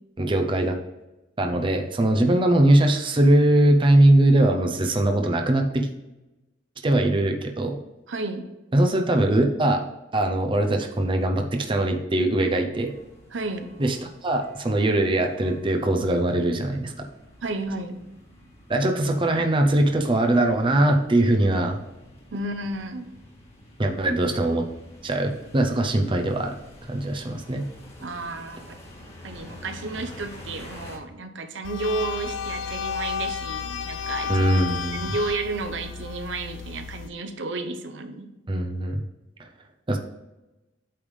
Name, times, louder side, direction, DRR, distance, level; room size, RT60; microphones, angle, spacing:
voice 1, 0.2-0.8 1.4-5.9 6.8-7.8 8.7-9.8 10.1-12.9 13.8-14.0 14.2-17.0 18.7-21.8 23.8-24.7 25.0-26.5 26.9-27.7 34.3-35.0 38.5-39.0 39.9-40.0, right 1 dB, 25° right, 3 dB, 0.6 m, -21 dB
voice 2, 8.1-8.5 13.3-13.7 17.4-18.0 22.3-23.1 28.0-28.8 29.1-34.5 34.9-38.3, right 3 dB, 70° right, 7 dB, 0.7 m, -32 dB
sound 1, 12.7-31.0, left 1 dB, 35° left, 1.7 m, -48 dB
sound 2, 31.6-37.1, left 7 dB, 70° left, 0.4 m, -32 dB
8.7 x 3.5 x 4.9 m, 1.0 s
head